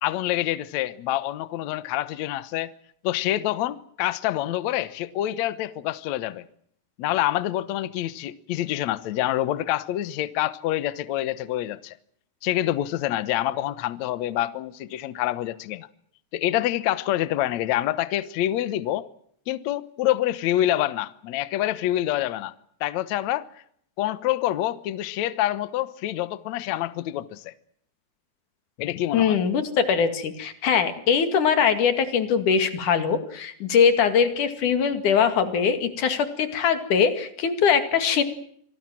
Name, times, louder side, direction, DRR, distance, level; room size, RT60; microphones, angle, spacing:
voice 1, 0.0-2.7 3.0-6.5 7.0-12.0 12.4-15.9 16.3-19.1 19.5-22.5 22.8-23.5 24.0-27.5 28.8-29.4, left 14 dB, 85° left, 1.6 m, -26 dB
voice 2, 29.1-38.2, left 7 dB, 55° left, 3.2 m, -22 dB
26.5 x 19.0 x 7.6 m
omnidirectional pair, 4.9 m